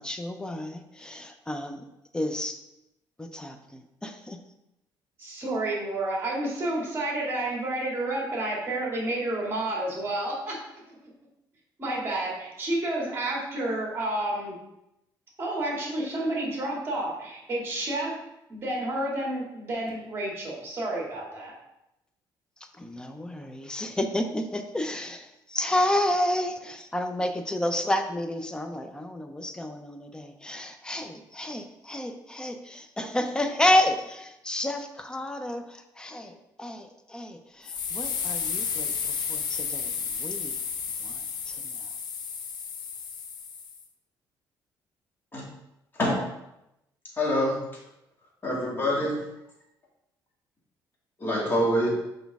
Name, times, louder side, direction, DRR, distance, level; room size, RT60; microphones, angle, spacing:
voice 1, 0.0-1.8 2.1-2.6 3.2-4.4 22.8-40.5 41.0-41.8, left 1 dB, 10° left, 6 dB, 0.6 m, -30 dB
voice 2, 5.2-10.6 10.9-11.0 11.8-14.6 15.4-18.2 18.5-21.5, right 1 dB, 30° right, -3 dB, 2.3 m, -30 dB
sound 1, 37.7-43.8, left 6 dB, 60° left, 0.8 m, -32 dB
voice 3, 45.9-46.2 47.2-47.6 48.4-49.3 51.2-51.9, equal, 25° left, -3 dB, 2.1 m, -25 dB
6.1 x 5.1 x 3.5 m, 0.87 s
cardioid pair, 125°, 8 cm